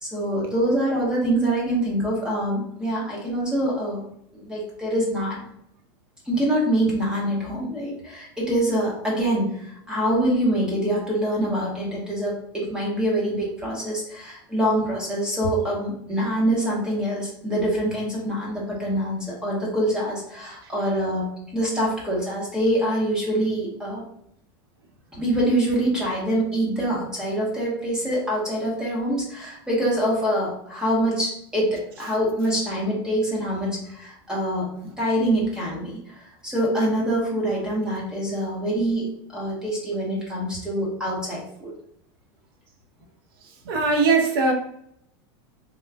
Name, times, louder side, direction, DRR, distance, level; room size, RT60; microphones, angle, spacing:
voice 1, 0.0-4.0 4.3-5.4 6.2-24.0 25.1-41.7, right 1 dB, 5° right, -5 dB, 0.9 m, -25 dB
voice 2, 43.4-44.5, right 4 dB, 70° right, 3 dB, 0.8 m, -21 dB
3.7 x 2.2 x 3.3 m, 0.73 s
supercardioid pair, 170°, 13 cm